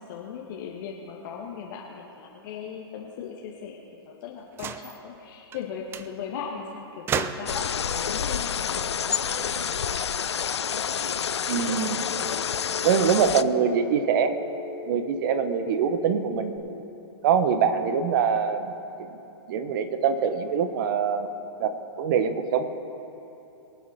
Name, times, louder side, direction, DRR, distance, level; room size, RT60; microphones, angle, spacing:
voice 1, 0.0-9.7, left 7 dB, 50° left, -2 dB, 1.5 m, -38 dB
sound 1, 4.5-5.0 5.5-5.7 5.9-6.1 7.1-7.7 8.9-10.0, right 7 dB, 15° right, 0.4 m, -33 dB
sound 2, 7.5-13.4, left 7 dB, 90° left, 0.4 m, -28 dB
voice 2, 11.5-12.1 12.8-14.3 14.9-16.5 17.2-18.7 19.0-19.1 19.5-21.3 21.6-22.6, right 7 dB, 50° right, 10 dB, 1.1 m, -24 dB
Telephone, 11.6-16.6, left 3 dB, 70° left, 3.3 m, -40 dB
24.0 x 8.0 x 4.3 m, 3.0 s
hypercardioid pair, 125°, 14 cm